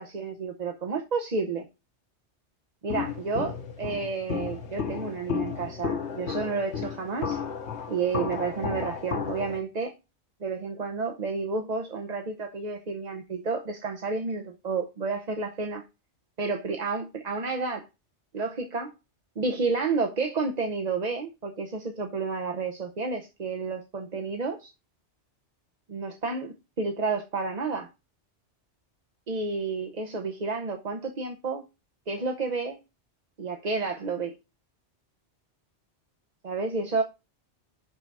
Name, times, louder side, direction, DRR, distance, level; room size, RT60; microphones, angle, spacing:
voice 1, 0.0-1.7 2.8-7.4 7.9-9.9 10.4-15.8 16.4-17.9 18.3-18.9 19.4-24.7 25.9-27.9 29.3-31.6 32.1-32.8 33.4-34.3 36.4-37.0, right 4 dB, 40° right, 0.9 m, -30 dB
Walk footsteps, 2.9-9.6, left 6 dB, 75° left, 1.4 m, -33 dB
10.0 x 3.9 x 4.6 m
omnidirectional pair, 1.2 m